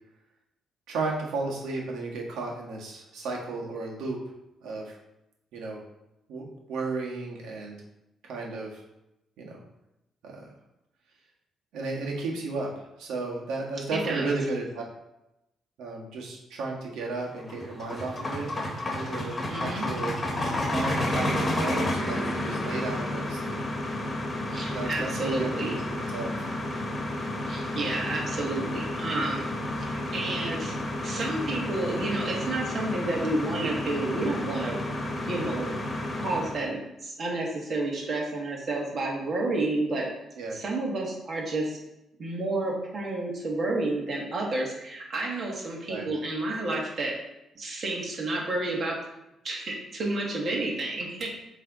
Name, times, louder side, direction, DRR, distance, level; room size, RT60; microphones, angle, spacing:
voice 1, 0.9-4.2 4.6-5.0 5.5-5.8 6.3-7.8 8.2-8.8 9.4-9.6 10.2-10.5 11.7-14.8 15.8-18.5 18.9-20.2 20.7-23.6 24.7-26.5 35.0-35.3 40.4-40.6 45.9-46.1, right 3 dB, 85° right, -1 dB, 1.5 m, -34 dB
voice 2, 13.9-14.3 19.5-19.9 24.5-25.7 27.5-29.5 29.8-30.8 31.0-34.8 35.3-40.1 40.5-41.8 42.2-47.1 47.6-49.0 49.4-51.3, right 2 dB, 50° right, -2 dB, 2.0 m, -30 dB
sound 1, 17.3-36.7, left 1 dB, 30° left, 1.3 m, -31 dB
7.7 x 3.4 x 4.0 m, 0.89 s
cardioid pair, 90°, 0 cm